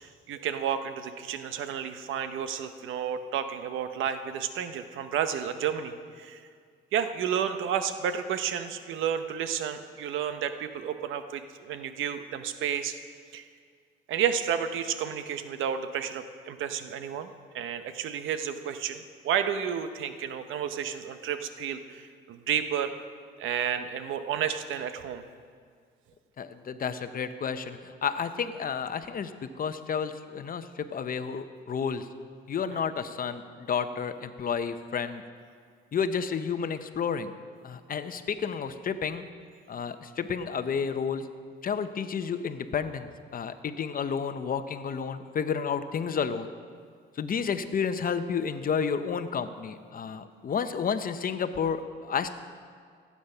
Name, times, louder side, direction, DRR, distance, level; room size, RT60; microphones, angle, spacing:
voice 1, 0.0-6.4 6.9-12.9 13.3-13.4 14.1-17.3 17.5-22.9 23.4-25.2 32.7-32.8, right 8 dB, 85° right, 9 dB, 0.8 m, -31 dB
voice 2, 26.4-32.1 32.5-35.2 35.9-37.3 37.6-39.2 39.7-41.3 41.6-46.5 47.1-52.3, left 6 dB, 45° left, 10 dB, 0.8 m, -31 dB
15.5 x 8.6 x 5.6 m, 2.1 s
cardioid pair, 90°, 20 cm